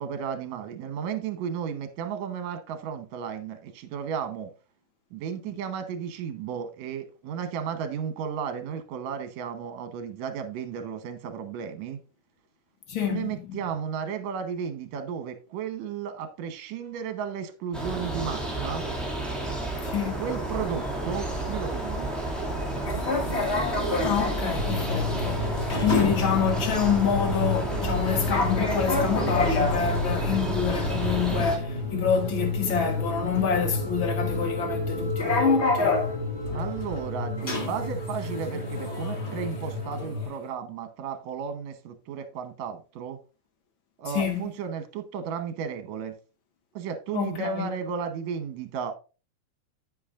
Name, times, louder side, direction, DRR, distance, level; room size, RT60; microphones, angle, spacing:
voice 1, 0.0-4.5 5.1-12.0 13.1-18.8 20.2-22.1 36.5-43.2 44.0-46.1 46.7-48.9, right 7 dB, 70° right, 2.2 m, -34 dB
voice 2, 12.9-13.6 19.8-20.2 24.0-25.5 25.8-36.0 44.1-44.5 47.1-47.7, left 7 dB, 80° left, 1.1 m, -27 dB
sound 1, 17.7-31.6, right 1 dB, ahead, 1.5 m, -31 dB
sound 2, 22.8-40.4, left 3 dB, 50° left, 0.7 m, -31 dB
sound 3, 24.6-40.3, left 2 dB, 45° right, 2.1 m, -31 dB
9.4 x 8.4 x 2.4 m
omnidirectional pair, 3.4 m